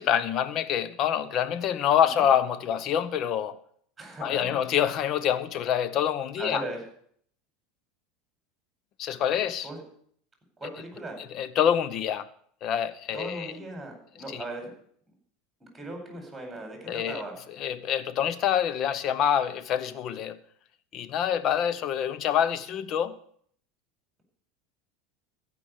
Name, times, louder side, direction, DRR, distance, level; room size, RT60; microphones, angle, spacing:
voice 1, 0.0-3.6 4.2-6.6 9.0-9.7 10.6-10.7 11.3-12.2 12.6-13.5 14.3-14.4 16.9-17.2 17.5-20.4 20.9-23.2, left 9 dB, 50° left, 0.9 m, -26 dB
voice 2, 4.0-4.6 6.4-6.8 9.6-9.8 10.6-11.2 13.1-14.7 15.6-17.3, right 2 dB, 10° right, 4.7 m, -38 dB
15.0 x 5.3 x 8.0 m
hypercardioid pair, 100°, 0 cm